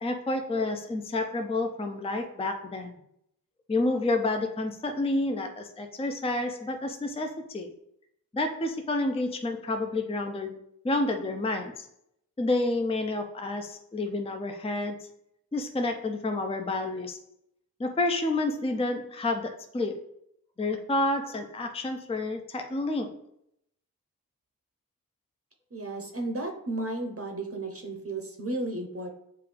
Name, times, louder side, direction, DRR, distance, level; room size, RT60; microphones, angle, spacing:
voice 1, 0.0-3.0 3.7-7.7 8.3-10.6 10.8-11.9 12.4-15.0 15.5-17.2 17.8-20.0 20.6-23.1, left 2 dB, 15° left, 5 dB, 0.5 m, -29 dB
voice 2, 25.7-29.1, right 2 dB, 40° right, 3 dB, 0.8 m, -33 dB
6.8 x 2.3 x 3.3 m, 0.75 s
wide cardioid pair, 50°, 36 cm